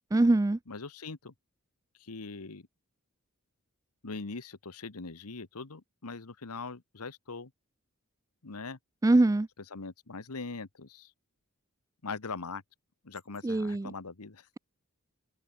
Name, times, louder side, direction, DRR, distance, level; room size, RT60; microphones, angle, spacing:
voice 1, 0.1-0.6 9.0-9.5 13.4-13.9, right 2 dB, 15° right, 0.3 m, -23 dB
voice 2, 0.7-1.3 2.0-2.7 4.0-7.5 8.4-8.8 9.7-11.1 12.0-12.6 13.0-14.5, left 4 dB, 80° left, 1.3 m, -41 dB
open air
head